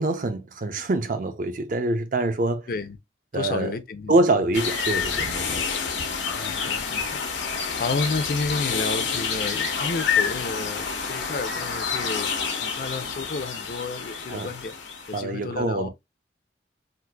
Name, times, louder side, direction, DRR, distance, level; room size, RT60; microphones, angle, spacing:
voice 1, 0.0-2.7 3.3-3.7 4.1-5.6 14.3-14.5 15.1-15.9, right 2 dB, 45° right, 0.5 m, -25 dB
voice 2, 3.3-4.1 6.4-7.2 7.8-12.3 12.6-14.7 15.1-15.9, left 3 dB, 50° left, 0.5 m, -31 dB
sound 1, 4.5-15.2, left 6 dB, 90° left, 0.9 m, -28 dB
3.9 x 2.5 x 2.2 m
head